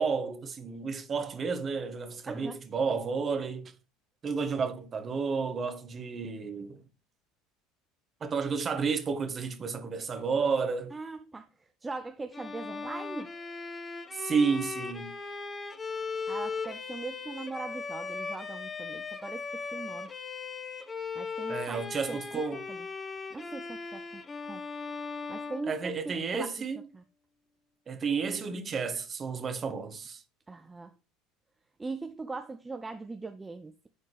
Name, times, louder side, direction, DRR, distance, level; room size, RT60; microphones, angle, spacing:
voice 1, 0.0-3.7 4.2-6.8 8.2-10.9 14.1-15.1 21.5-22.6 25.7-26.8 27.9-30.2, right 5 dB, 35° right, 1.5 m, -31 dB
voice 2, 10.9-13.3 16.3-20.1 21.1-22.9 23.3-24.2 24.5-24.6 25.3-26.5 26.9-27.0 30.5-30.9 31.8-33.9, right 3 dB, 15° right, 0.6 m, -40 dB
Bowed string instrument, 12.3-26.4, left 4 dB, 25° left, 1.0 m, -38 dB
11.0 x 4.2 x 3.3 m
figure-of-eight pair, 70°, 0 cm